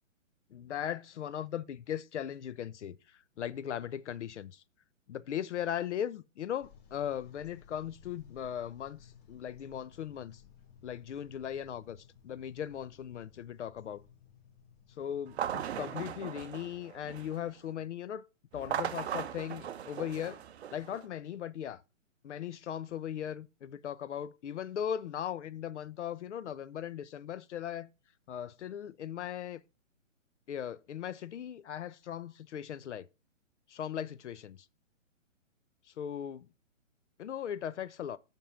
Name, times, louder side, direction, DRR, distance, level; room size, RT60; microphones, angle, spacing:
voice 1, 0.5-4.6 5.1-10.4 10.8-14.0 15.0-18.3 18.5-20.4 20.7-21.8 22.2-27.9 28.3-29.6 30.5-33.1 33.7-34.7 36.0-36.5 37.2-38.2, left 9 dB, 65° left, 0.6 m, -38 dB
sound 1, 6.6-16.6, left 7 dB, 30° left, 1.1 m, -59 dB
sound 2, 15.3-17.5 18.5-21.1, right 9 dB, 55° right, 0.6 m, -38 dB
5.9 x 5.3 x 5.0 m
hypercardioid pair, 145°, 39 cm